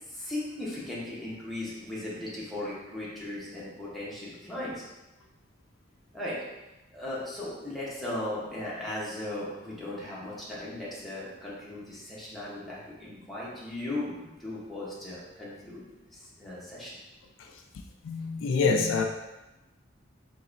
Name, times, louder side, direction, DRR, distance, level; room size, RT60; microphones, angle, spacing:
voice 1, 0.0-4.9 6.1-6.4 6.9-15.8 16.1-17.0, left 1 dB, ahead, -8 dB, 1.0 m, -37 dB
voice 2, 17.4-19.0, left 4 dB, 80° left, 4 dB, 0.4 m, -27 dB
3.9 x 3.0 x 2.6 m, 1.0 s
head